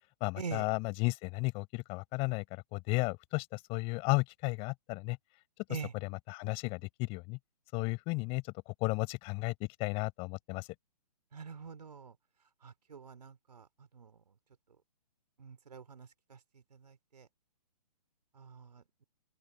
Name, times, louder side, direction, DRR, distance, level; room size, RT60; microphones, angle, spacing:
voice 1, 0.2-5.2 5.9-7.4 7.7-8.4 8.8-10.7, left 27 dB, 30° left, 6.1 m, -34 dB
voice 2, 11.3-12.1 12.6-13.7 13.9-14.2 15.4-16.4 16.7-17.3 18.4-19.0, right 5 dB, 75° right, 4.4 m, -45 dB
open air
hypercardioid pair, 140°, 21 cm